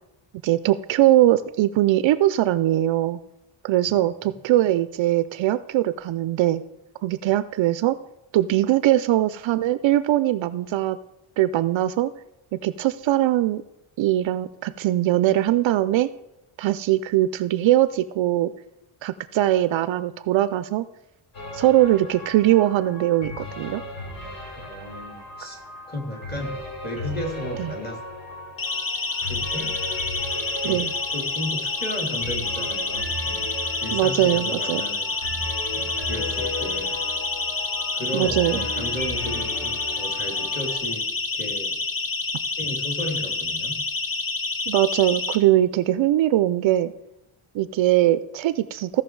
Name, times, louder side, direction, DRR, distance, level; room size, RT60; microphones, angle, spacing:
voice 1, 0.4-3.2 3.6-6.6 7.0-8.0 8.3-11.0 11.4-12.1 12.5-13.6 14.0-16.1 16.6-18.5 19.0-20.9 21.5-23.8 27.6-27.7 30.6-30.9 33.9-34.8 38.1-38.7 44.7-46.9 47.5-49.0, right 14 dB, 65° right, 14 dB, 0.5 m, -21 dB
sound 1, 21.3-40.8, left 1 dB, 70° left, 4.2 m, -36 dB
voice 2, 24.5-25.6 25.9-28.0 29.2-29.7 30.6-30.9 31.1-33.5 33.8-35.1 35.7-37.0 37.9-41.8 42.6-43.8, left 1 dB, 20° left, 1 dB, 2.6 m, -34 dB
Siren, 28.6-45.4, left 3 dB, 40° left, 1.3 m, -28 dB
15.5 x 5.9 x 4.6 m, 0.89 s
cardioid pair, 110°, 49 cm